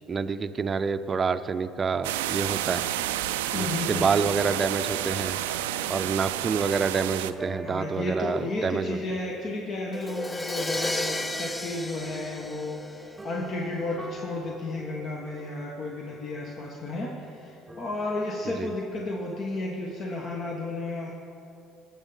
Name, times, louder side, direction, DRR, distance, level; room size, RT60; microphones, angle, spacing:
voice 1, 0.1-2.8 3.5-5.4 5.9-9.0 18.5-18.7, right 5 dB, 35° right, 12 dB, 0.5 m, -27 dB
sound 1, 2.0-7.3, right 13 dB, 85° right, 0.3 m, -30 dB
voice 2, 3.5-4.1 7.6-21.1, left 2 dB, 50° left, -1 dB, 1.3 m, -33 dB
sound 2, 4.3-19.4, right 2 dB, 10° right, 1.1 m, -46 dB
Crash cymbal, 9.9-13.7, left 1 dB, 15° left, 0.6 m, -33 dB
19.5 x 7.1 x 4.0 m, 2.7 s
hypercardioid pair, 70°, 0 cm